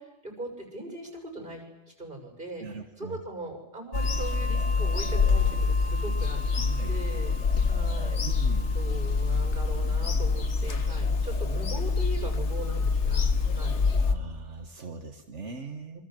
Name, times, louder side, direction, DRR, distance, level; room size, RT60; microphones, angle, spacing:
voice 1, 0.0-6.4 6.9-7.3 7.6-8.2 8.7-14.1 15.9-16.0, right 1 dB, 45° right, 3 dB, 6.8 m, -40 dB
voice 2, 2.6-3.2 6.6-7.0 8.2-8.8 14.0-16.0, right 4 dB, 80° right, 4 dB, 1.9 m, -40 dB
Bird vocalization bird call bird song / Telephone, 3.9-14.1, left 4 dB, 75° left, 1.8 m, -26 dB
27.0 x 25.0 x 7.8 m, 0.98 s
omnidirectional pair, 1.2 m